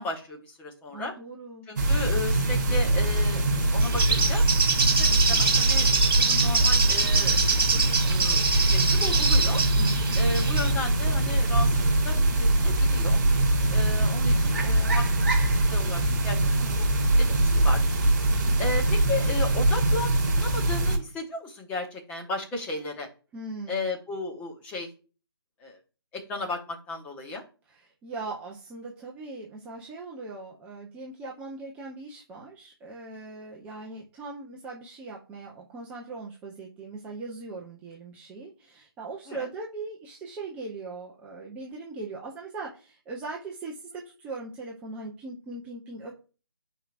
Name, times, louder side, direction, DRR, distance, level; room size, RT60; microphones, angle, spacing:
voice 1, 0.0-1.1 1.7-3.4 3.7-4.4 4.8-7.4 7.7-9.6 10.1-13.2 13.7-15.4 15.7-17.8 18.6-23.1 23.7-24.9 25.6-25.8 26.1-27.4 39.3-39.5, left 2 dB, 10° left, 0 dB, 1.0 m, -35 dB
voice 2, 0.9-1.7 9.7-10.0 23.3-23.9 27.7-46.1, right 3 dB, 10° right, -2 dB, 0.7 m, -40 dB
sound 1, 1.8-21.0, right 1 dB, 45° right, 2.6 m, -23 dB
Bird, 3.8-10.7, right 4 dB, 60° right, 1.6 m, -25 dB
9.0 x 4.7 x 2.5 m, 0.36 s
figure-of-eight pair, 150°, 13 cm